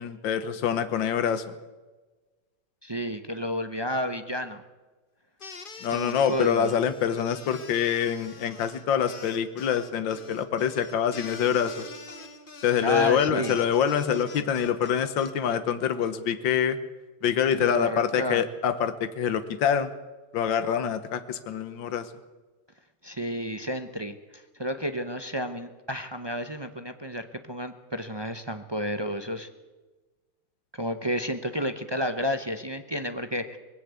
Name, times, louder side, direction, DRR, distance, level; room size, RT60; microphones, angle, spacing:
voice 1, 0.0-1.5 5.8-11.9 12.6-16.8 17.2-19.9 20.3-22.1, left 8 dB, 80° left, 11 dB, 1.8 m, -26 dB
voice 2, 2.8-4.6 5.9-6.7 12.8-13.5 17.5-18.4 23.0-29.5 30.7-33.6, equal, 40° right, 8 dB, 0.3 m, -31 dB
sound 1, 5.4-15.3, left 4 dB, 30° left, 1.5 m, -45 dB
20.0 x 16.5 x 8.2 m, 1.2 s
omnidirectional pair, 2.0 m